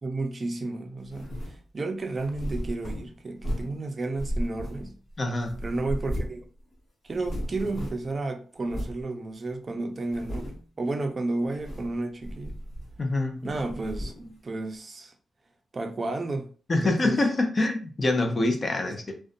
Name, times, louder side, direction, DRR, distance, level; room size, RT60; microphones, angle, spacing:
voice 1, 0.0-5.0 5.6-6.4 7.0-12.6 13.4-15.1 15.7-16.5 16.8-17.2 18.8-18.9, right 2 dB, 35° right, 0.5 m, -32 dB
sound 1, 1.1-1.6 2.2-3.8 4.2-5.1 5.4-6.5 6.7-6.8 7.1-8.1 8.7-9.0 9.5-9.6 10.0-10.7 11.4-12.0 12.2-13.1 13.5-14.3, equal, 60° left, 0.9 m, -35 dB
voice 2, 5.2-5.6 13.0-13.5 16.7-19.1, left 2 dB, 35° left, 0.6 m, -25 dB
2.5 x 2.2 x 2.5 m
cardioid pair, 105°, 0 cm